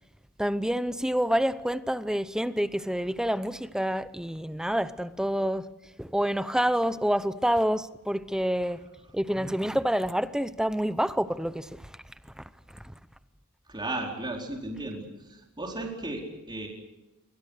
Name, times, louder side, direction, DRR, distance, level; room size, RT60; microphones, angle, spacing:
voice 1, 0.4-5.7 6.0-8.8 9.1-11.9, equal, 5° right, 0.8 m, -27 dB
voice 2, 13.7-15.0 15.3-16.7, right 2 dB, 20° right, 4.5 m, -35 dB
28.0 x 24.0 x 6.6 m
head